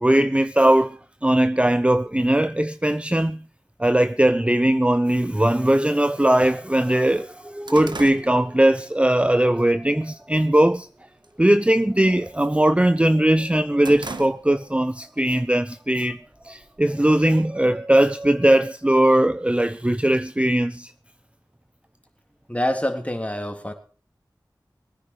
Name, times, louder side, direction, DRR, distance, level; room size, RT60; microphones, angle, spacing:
voice 1, 0.0-3.4 3.8-10.9 11.4-16.2 16.4-20.9, right 1 dB, 15° right, 0.7 m, -19 dB
sound 1, 4.8-4.9 5.8-5.9 6.4-6.5 6.8-9.2 9.6-9.9 10.3-10.8 11.1-11.4 11.7-13.0 13.3-14.8 15.2-15.3 16.2-17.1, right 3 dB, 70° right, 1.5 m, -39 dB
voice 2, 22.5-23.7, left 1 dB, 15° left, 3.3 m, -26 dB
21.5 x 9.9 x 4.9 m
wide cardioid pair, 40°, 8 cm